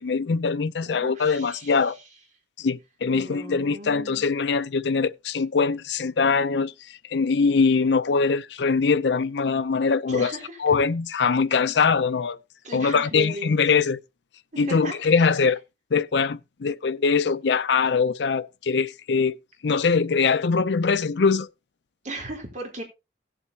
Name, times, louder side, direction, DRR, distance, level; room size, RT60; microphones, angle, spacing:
voice 1, 0.0-2.0 2.6-10.3 10.6-12.4 12.7-14.0 14.6-15.6 15.9-19.4 19.6-21.5, left 5 dB, 70° left, 0.5 m, -22 dB
voice 2, 0.9-1.9 3.1-4.3 10.1-10.8 12.6-13.6 14.5-15.3 22.0-22.8, right 1 dB, 40° right, 3.7 m, -37 dB
17.5 x 7.7 x 2.8 m
head